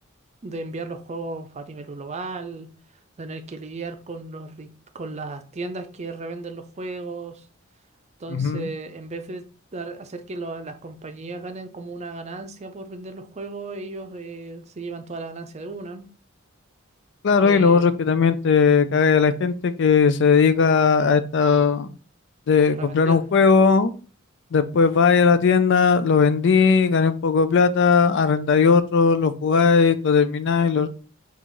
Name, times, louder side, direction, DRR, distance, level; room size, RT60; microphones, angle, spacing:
voice 1, 0.4-2.7 3.2-7.5 8.2-9.4 9.7-16.1 17.4-17.9 22.7-23.3, right 3 dB, 35° right, 0.5 m, -35 dB
voice 2, 8.3-8.7 17.2-21.9 22.5-23.9 24.5-30.9, left 5 dB, 60° left, 0.4 m, -18 dB
3.9 x 2.4 x 4.5 m
head